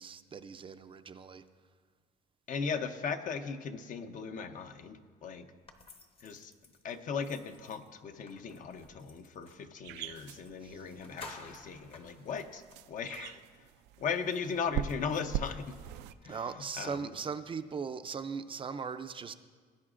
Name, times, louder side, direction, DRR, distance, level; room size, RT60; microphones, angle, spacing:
voice 1, 0.0-1.4 10.6-10.8 16.2-19.3, right 6 dB, 30° right, 9 dB, 0.4 m, -39 dB
voice 2, 2.5-5.5 6.2-6.5 6.8-12.6 12.9-13.4 14.0-15.8 16.2-17.1, left 6 dB, 50° left, 8 dB, 0.7 m, -37 dB
sound 1, 5.7-9.7 10.4-10.5 10.8-12.8, left 3 dB, 35° left, 1.0 m, -53 dB
sound 2, 9.8-16.1, right 9 dB, 90° right, 0.4 m, -42 dB
18.5 x 9.1 x 2.5 m, 1.5 s
cardioid pair, 110°, 17 cm